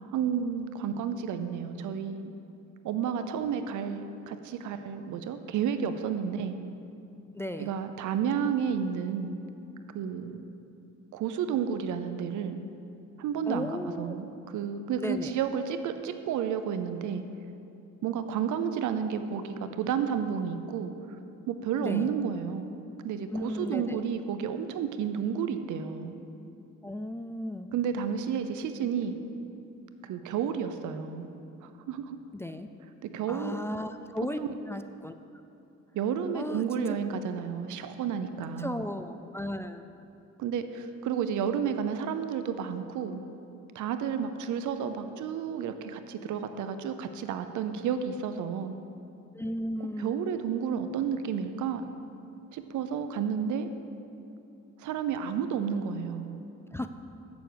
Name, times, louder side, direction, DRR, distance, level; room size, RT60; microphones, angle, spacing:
voice 1, 0.0-2.3 2.8-6.6 7.6-9.3 9.9-10.5 11.1-12.6 13.2-17.2 18.0-20.9 21.5-22.7 23.0-26.2 27.7-29.2 30.0-31.3 31.6-32.2 33.0-33.5 34.4-34.5 35.9-38.8 40.4-43.2 43.7-48.7 50.0-51.9 52.5-53.7 54.8-56.4, right 7 dB, 80° right, 9 dB, 0.7 m, -31 dB
voice 2, 7.3-7.7 13.5-14.1 15.0-15.3 21.8-22.1 23.3-24.0 26.8-27.7 32.3-32.7 33.3-34.4 34.7-35.1 36.3-37.0 38.6-39.9 49.3-50.3 56.7-56.9, left 1 dB, 10° left, 8 dB, 0.3 m, -35 dB
7.6 x 7.0 x 6.8 m, 2.8 s
cardioid pair, 90°, 30 cm